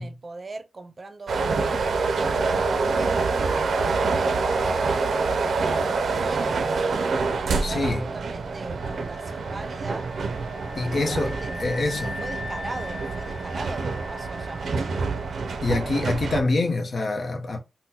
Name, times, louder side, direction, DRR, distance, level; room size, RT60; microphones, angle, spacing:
voice 1, 0.0-2.7 2.9-6.8 7.3-10.1 10.8-14.6, right 3 dB, 40° right, 0.5 m, -40 dB
sound 1, 1.3-16.4, right 4 dB, 90° right, 0.4 m, -26 dB
voice 2, 7.6-8.0 10.8-12.1 15.6-17.6, left 2 dB, 65° left, 0.8 m, -26 dB
sound 2, 8.8-15.6, left 3 dB, 25° left, 1.0 m, -41 dB
3.7 x 2.1 x 2.8 m
wide cardioid pair, 95°, 0 cm